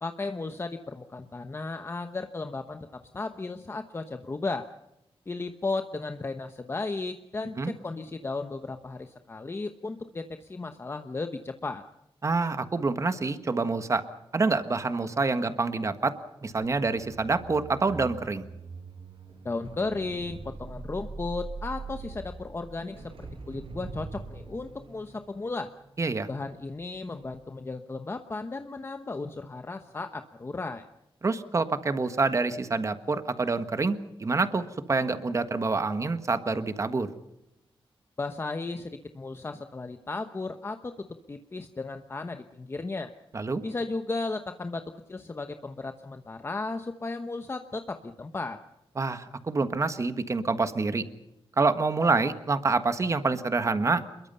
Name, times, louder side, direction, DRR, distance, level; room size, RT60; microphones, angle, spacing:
voice 1, 0.0-4.7 5.3-11.8 19.4-23.1 23.5-25.7 26.3-30.8 38.2-43.1 43.6-48.6, left 3 dB, 25° left, 7 dB, 1.0 m, -35 dB
voice 2, 12.2-14.0 14.3-16.1 16.4-18.4 26.0-26.3 31.2-37.1 43.3-43.6 49.0-51.0 51.6-54.0, right 3 dB, 30° right, 10 dB, 1.5 m, -27 dB
sound 1, 16.6-26.8 27.2-27.5, right 4 dB, 70° right, 5.1 m, -43 dB
28.0 x 22.0 x 5.6 m, 0.86 s
wide cardioid pair, 165°, 10 cm